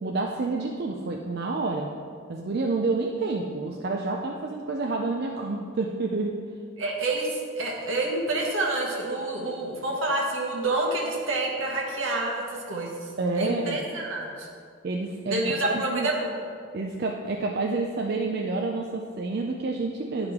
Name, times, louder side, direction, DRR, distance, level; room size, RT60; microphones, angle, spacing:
voice 1, 0.0-1.9 2.3-6.3 13.2-13.8 14.8-16.1 16.7-20.3, right 3 dB, 50° right, 1 dB, 0.4 m, -28 dB
voice 2, 6.8-13.1 13.4-14.5 15.2-16.5, right 2 dB, 75° right, -1 dB, 1.3 m, -28 dB
10.5 x 4.8 x 3.6 m, 2.1 s
head